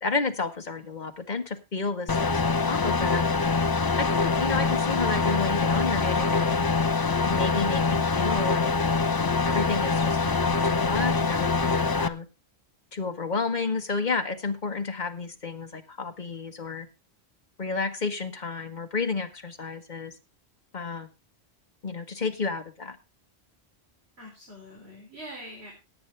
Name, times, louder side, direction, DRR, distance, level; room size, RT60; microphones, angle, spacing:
voice 1, 0.0-3.2 4.0-6.6 7.2-8.7 9.1-12.2 12.9-16.9 17.6-20.1 20.7-21.1 21.8-23.0, left 4 dB, 45° left, 6 dB, 1.5 m, -31 dB
sound 1, 2.1-12.1, left 4 dB, 25° left, 0.5 m, -24 dB
voice 2, 24.2-25.7, equal, 75° right, -1 dB, 4.1 m, -44 dB
18.0 x 8.3 x 3.3 m, 0.27 s
omnidirectional pair, 1.1 m